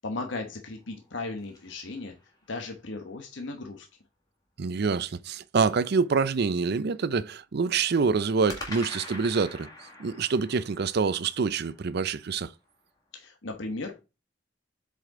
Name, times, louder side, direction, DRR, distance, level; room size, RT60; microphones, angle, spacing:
voice 1, 0.0-2.1 2.5-3.9 13.1-13.9, left 2 dB, 75° left, 1.1 m, -36 dB
sound 1, 0.8-2.7 8.5-12.8, left 2 dB, 20° left, 1.9 m, -45 dB
voice 2, 4.6-9.7 10.0-12.5, right 5 dB, 60° right, 0.5 m, -26 dB
7.7 x 5.1 x 3.7 m
head